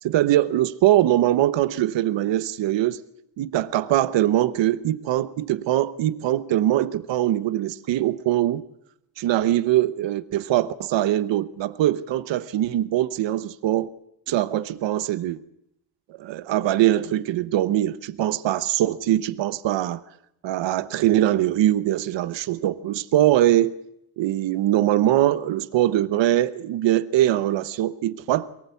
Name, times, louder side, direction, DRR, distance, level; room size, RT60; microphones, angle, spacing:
voice 1, 0.0-3.0 3.4-8.6 9.2-13.9 14.3-15.4 16.2-20.0 20.4-23.8 24.2-28.5, right 13 dB, 75° right, 1.0 m, -22 dB
23.0 x 18.5 x 8.3 m
cardioid pair, 110°, 44 cm